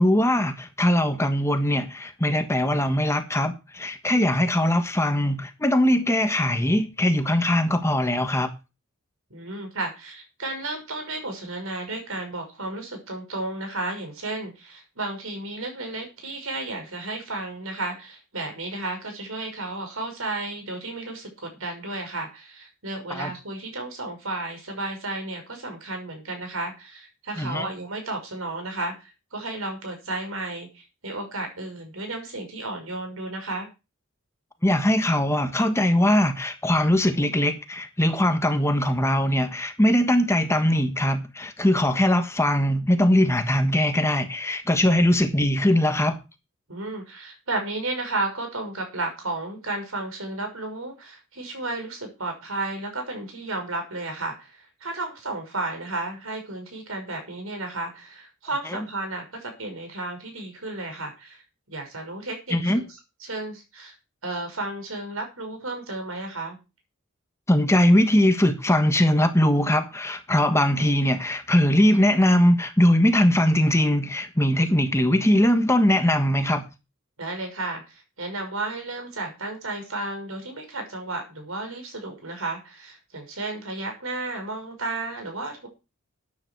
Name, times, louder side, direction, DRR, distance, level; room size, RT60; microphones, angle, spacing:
voice 1, 0.0-8.5 23.1-23.3 27.4-27.7 34.6-46.2 62.5-62.8 67.5-76.6, left 1 dB, 15° left, 1.4 m, -21 dB
voice 2, 9.3-33.7 46.7-61.4 61.7-64.0 64.2-66.6 77.2-85.7, right 2 dB, 80° right, 5.8 m, -33 dB
13.0 x 9.8 x 4.6 m
head